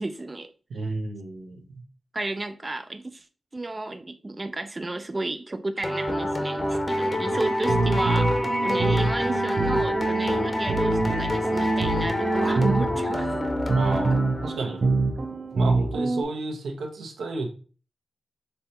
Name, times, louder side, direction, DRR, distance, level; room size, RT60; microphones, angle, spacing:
voice 1, 0.0-0.9 2.1-3.3 3.5-13.3, right 2 dB, 35° right, 0.4 m, -32 dB
voice 2, 0.7-1.6 13.7-14.8 15.5-17.5, right 3 dB, 90° right, 0.9 m, -32 dB
sound 1, 5.8-14.7, left 1 dB, 35° left, 1.1 m, -27 dB
sound 2, 7.3-16.2, right 3 dB, 60° right, 0.7 m, -26 dB
5.4 x 3.2 x 2.8 m
cardioid pair, 45°, 0 cm